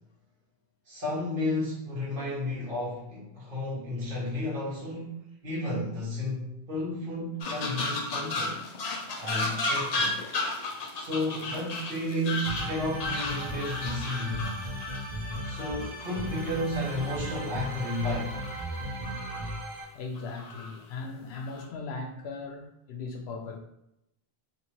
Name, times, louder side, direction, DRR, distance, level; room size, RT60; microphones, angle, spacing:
voice 1, 0.9-8.6 9.2-10.2 10.9-14.4 15.4-18.4, left 1 dB, 55° right, -5 dB, 1.3 m, -32 dB
sound 1, 7.4-17.2 17.6-18.7 19.0-19.6 20.2-20.7 21.3-21.7, left 2 dB, 55° left, 0.5 m, -34 dB
sound 2, 12.5-19.8, right 1 dB, 85° right, 1.0 m, -36 dB
voice 2, 19.9-23.6, left 3 dB, 85° left, 4 dB, 0.8 m, -38 dB
2.9 x 2.9 x 2.8 m, 0.82 s
omnidirectional pair, 1.0 m